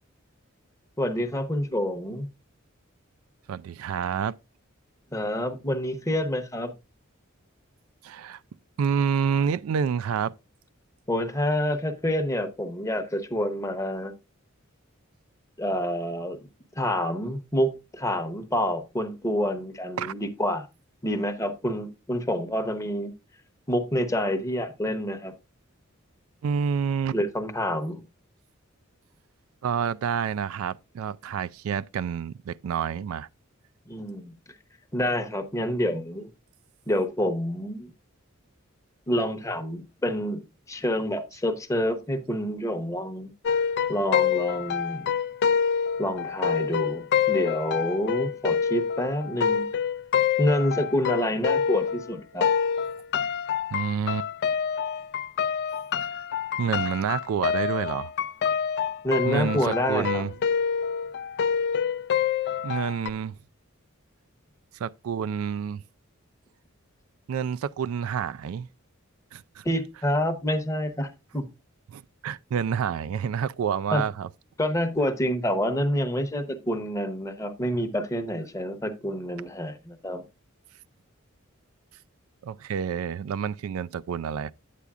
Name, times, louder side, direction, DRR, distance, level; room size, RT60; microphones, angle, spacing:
voice 1, 1.0-2.3 5.1-6.7 11.1-14.1 15.6-16.4 16.8-20.7 21.0-23.1 23.7-25.3 27.1-28.0 33.9-34.4 34.9-36.3 36.9-37.9 39.1-43.3 43.9-45.1 46.0-49.7 50.4-52.5 59.0-60.2 69.6-71.4 73.9-74.0 74.6-80.2, equal, 15° left, 0.8 m, -27 dB
voice 2, 3.5-4.3 8.0-8.4 8.8-10.3 20.0-20.1 26.4-27.2 29.6-33.3 53.7-54.3 56.6-58.1 59.3-60.3 62.6-63.3 64.8-65.8 67.3-68.7 69.3-69.6 71.9-74.3 82.4-84.5, right 7 dB, 80° right, 0.3 m, -28 dB
sound 1, 43.5-52.1 52.4-63.1, left 7 dB, 55° left, 0.4 m, -26 dB
9.2 x 8.4 x 2.4 m
head